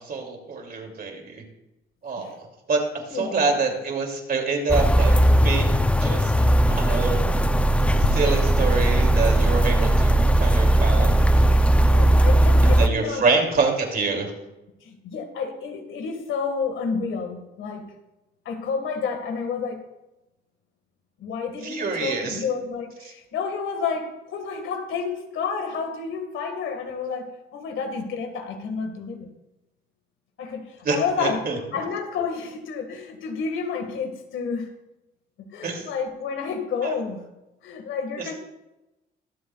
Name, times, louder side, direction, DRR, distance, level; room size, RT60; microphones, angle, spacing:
voice 1, 0.0-1.4 2.0-7.2 7.9-11.5 12.6-14.3 21.6-22.4 30.8-31.6 35.6-35.9 36.8-36.9 38.2-38.4, right 4 dB, 50° right, 2 dB, 2.8 m, -26 dB
voice 2, 3.0-3.5 11.9-13.2 14.8-17.9 18.5-19.8 21.2-29.3 30.4-31.4 31.7-34.7 35.5-37.2 37.6-38.4, left 5 dB, 80° left, 5 dB, 1.9 m, -30 dB
sound 1, 4.7-12.9, right 1 dB, 5° left, 0.6 m, -18 dB
22.5 x 7.7 x 2.4 m, 0.98 s
cardioid pair, 90°, 20 cm